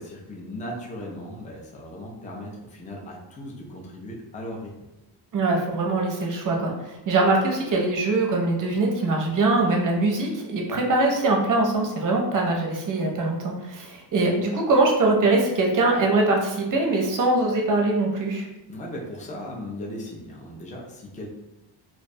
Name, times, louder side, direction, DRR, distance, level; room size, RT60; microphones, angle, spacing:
voice 1, 0.0-4.7 18.7-21.3, left 1 dB, 20° left, -2 dB, 0.4 m, -37 dB
voice 2, 5.3-18.5, right 2 dB, 45° right, 0 dB, 0.6 m, -22 dB
2.4 x 2.1 x 2.6 m, 0.98 s
cardioid pair, 125°, 46 cm